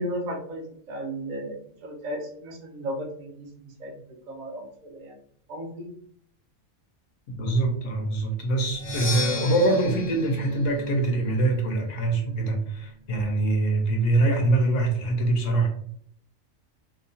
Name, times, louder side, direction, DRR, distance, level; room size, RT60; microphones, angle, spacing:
voice 1, 0.0-5.2 5.5-5.9, right 1 dB, 65° right, 0 dB, 0.4 m, -35 dB
voice 2, 7.4-15.7, right 2 dB, 70° left, 3 dB, 1.0 m, -24 dB
Percussion, 8.7-12.5, left 1 dB, 50° left, 0.5 m, -34 dB
2.9 x 2.1 x 2.6 m, 0.63 s
omnidirectional pair, 1.4 m